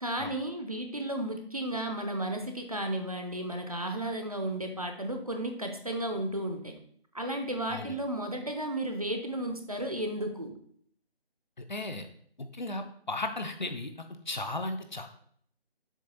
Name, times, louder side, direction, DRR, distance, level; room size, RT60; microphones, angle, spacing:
voice 1, 0.0-6.8 7.1-10.6, right 1 dB, 35° right, 4 dB, 0.7 m, -33 dB
voice 2, 11.7-12.1 12.4-13.9 14.3-15.1, left 2 dB, 45° left, 7 dB, 0.7 m, -35 dB
7.3 x 2.9 x 5.5 m, 0.62 s
figure-of-eight pair, 180°, 31 cm